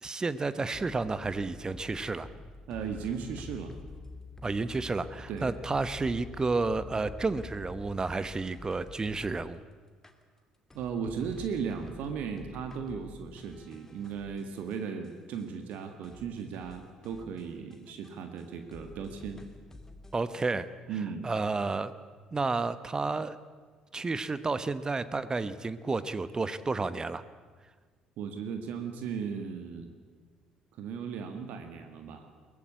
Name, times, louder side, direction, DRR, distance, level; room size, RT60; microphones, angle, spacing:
voice 1, 0.0-2.3 4.4-9.6 20.1-20.7 21.2-21.9 22.3-23.4 23.9-27.2, right 3 dB, 25° right, 15 dB, 1.0 m, -31 dB
sound 1, 0.7-9.6 10.0-10.1 10.7-15.1 15.4-15.5 15.7-15.8 16.0-18.4 18.7-20.4, left 3 dB, 15° left, 2.4 m, -48 dB
voice 2, 2.7-3.7 5.3-5.5 10.7-19.4 20.9-21.3 28.2-29.9 30.8-32.3, right 6 dB, 60° right, 6 dB, 1.9 m, -36 dB
22.5 x 18.0 x 8.3 m, 1.5 s
figure-of-eight pair, 50°, 3 cm